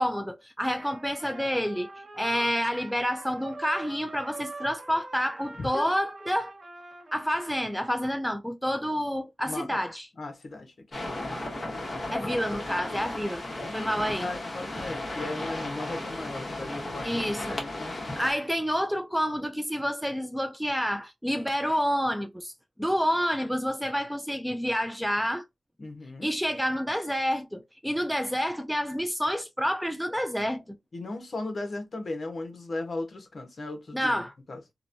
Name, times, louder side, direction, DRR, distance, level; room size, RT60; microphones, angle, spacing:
voice 1, 0.0-1.9 2.2-6.5 7.1-10.1 12.1-13.4 13.7-14.3 17.0-17.6 18.2-22.5 22.8-25.4 26.2-30.8 33.9-34.3, equal, ahead, 0.3 m, -28 dB
Trumpet, 0.7-8.1, right 2 dB, 40° right, 0.7 m, -45 dB
voice 2, 5.6-5.9 9.5-9.8 10.2-11.0 13.7-17.2 17.5-18.2 25.8-26.3 30.9-34.2 34.5-34.6, left 2 dB, 55° left, 0.8 m, -37 dB
sound 1, 10.9-18.3, left 1 dB, 35° left, 1.1 m, -35 dB
3.0 x 2.1 x 2.5 m
wide cardioid pair, 105°, 0 cm